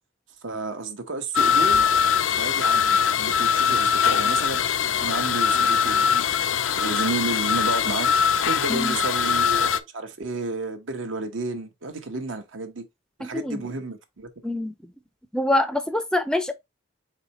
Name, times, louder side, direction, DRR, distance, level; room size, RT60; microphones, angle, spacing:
voice 1, 0.4-1.9 2.4-4.6 5.0-6.3 6.7-8.1 8.4-12.9 13.2-14.3, right 3 dB, 80° right, 1.0 m, -31 dB
sound 1, 1.3-9.8, left 7 dB, 80° left, 0.4 m, -22 dB
voice 2, 13.2-13.6 14.4-14.7 15.3-16.5, left 1 dB, 5° left, 0.4 m, -25 dB
4.2 x 4.2 x 2.9 m
head